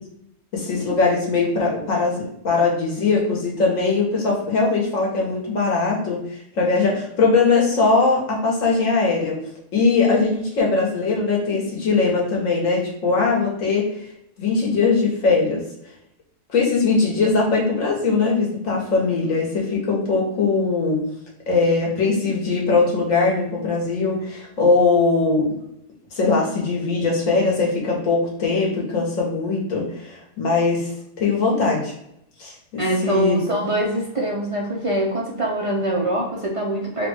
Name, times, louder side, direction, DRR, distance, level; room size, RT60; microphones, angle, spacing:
voice 1, 0.5-9.4 9.7-13.9 14.4-15.6 16.5-21.0 21.5-25.4 26.1-30.9 31.2-31.9 32.4-33.4, left 4 dB, 90° left, -3 dB, 1.5 m, -20 dB
voice 2, 32.8-37.1, right 1 dB, 45° right, -2 dB, 0.4 m, -23 dB
3.6 x 2.3 x 4.2 m, 0.75 s
omnidirectional pair, 1.3 m